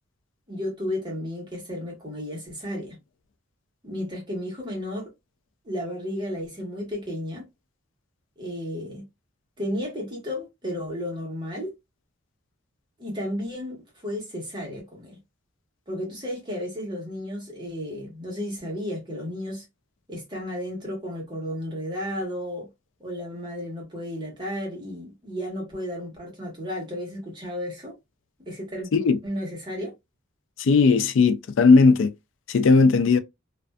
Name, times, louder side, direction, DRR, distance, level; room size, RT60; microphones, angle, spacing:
voice 1, 0.5-3.0 3.8-5.1 5.6-7.5 8.4-9.0 9.6-11.7 13.0-15.2 15.9-19.6 20.1-22.7 23.0-27.9 28.4-28.9 29.2-29.9, equal, 20° right, 1.2 m, -33 dB
voice 2, 30.6-32.1 32.5-33.2, left 4 dB, 70° left, 0.4 m, -17 dB
2.5 x 2.3 x 2.2 m
head